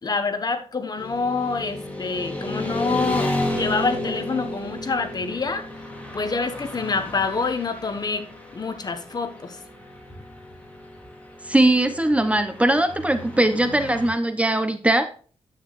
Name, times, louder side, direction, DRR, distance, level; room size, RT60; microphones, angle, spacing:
voice 1, 0.0-5.6 6.1-8.3 8.5-9.6, left 4 dB, 40° left, 8 dB, 1.3 m, -26 dB
Motorcycle / Traffic noise roadway noise, 1.0-14.1, left 1 dB, 15° left, 2.5 m, -33 dB
voice 2, 11.4-15.1, right 1 dB, 10° right, 9 dB, 0.8 m, -20 dB
10.0 x 8.6 x 2.5 m, 0.40 s
wide cardioid pair, 115°, 11 cm